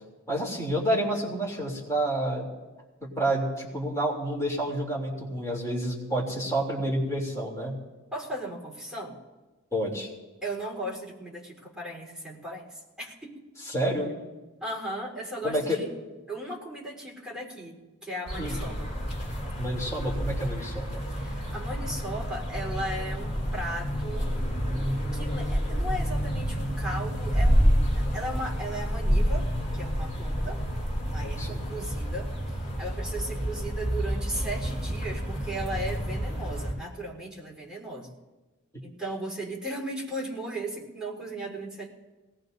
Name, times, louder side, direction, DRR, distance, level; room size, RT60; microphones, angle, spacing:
voice 1, 0.3-2.5 3.0-7.8 9.7-10.1 13.6-14.1 15.4-15.8 18.4-18.6 19.6-21.0 31.4-31.6 38.7-38.8, right 1 dB, 15° left, -3 dB, 3.1 m, -29 dB
voice 2, 8.1-9.2 10.4-13.4 14.6-15.9 16.3-18.9 21.1-24.4 25.1-30.6 31.1-32.3 32.8-38.1 38.8-41.9, right 1 dB, 5° right, -4 dB, 3.9 m, -36 dB
sound 1, 18.2-36.7, equal, 40° left, 5.5 m, -29 dB
22.5 x 19.0 x 2.7 m, 1.2 s
head